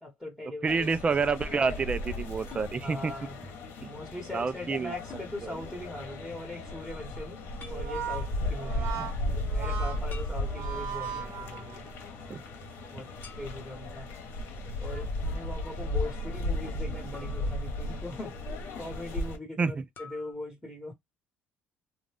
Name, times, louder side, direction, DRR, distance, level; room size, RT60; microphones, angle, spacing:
voice 1, 0.0-0.8 2.8-3.4 3.9-7.4 7.7-9.0 9.5-11.9 12.9-13.1 13.4-14.1 14.8-18.3 18.8-20.9, left 1 dB, ahead, 1.3 m, -40 dB
voice 2, 0.6-3.1 3.8-3.9 4.3-5.2 9.0-9.1 12.3-12.4 19.6-19.8, right 5 dB, 25° right, 0.4 m, -29 dB
sound 1, 0.7-19.4, left 1 dB, 70° left, 1.1 m, -35 dB
sound 2, 2.5-2.7 5.1-5.3 7.6-7.9 10.1-11.0 13.2-13.8 17.1-18.1 20.0-20.3, left 5 dB, 50° left, 1.2 m, -49 dB
Brass instrument, 7.6-12.1, right 8 dB, 70° right, 0.9 m, -38 dB
2.5 x 2.3 x 3.3 m
cardioid pair, 95°, 4 cm